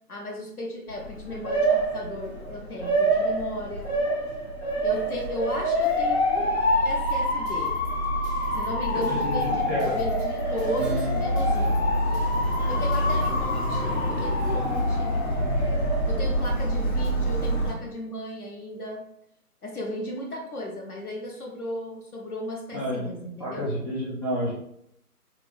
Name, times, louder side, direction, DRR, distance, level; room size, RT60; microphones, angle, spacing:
voice 1, 0.1-3.9 4.8-6.6 6.8-7.8 8.5-11.9 12.7-15.2 16.1-19.0 19.6-23.7, left 1 dB, 65° left, -1 dB, 0.8 m, -35 dB
Motor vehicle (road) / Siren, 0.9-17.7, equal, 45° left, 1.1 m, -25 dB
sound 1, 7.1-13.3, left 2 dB, 90° left, 1.2 m, -42 dB
voice 2, 9.2-9.9 22.7-24.5, equal, 20° left, -12 dB, 1.1 m, -30 dB
Acoustic guitar / Strum, 10.8-16.1, right 2 dB, 5° right, 0.3 m, -41 dB
3.8 x 2.2 x 2.4 m, 0.74 s
figure-of-eight pair, 165°, 47 cm